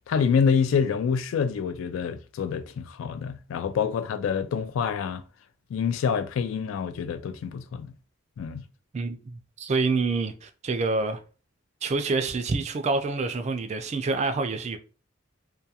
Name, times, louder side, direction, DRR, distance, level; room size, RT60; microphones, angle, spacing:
voice 1, 0.1-5.2 5.7-7.9 8.4-8.6, left 6 dB, 75° left, 0.3 m, -26 dB
voice 2, 8.9-11.2 11.8-14.8, right 3 dB, 35° right, 0.3 m, -27 dB
2.3 x 2.2 x 2.7 m
head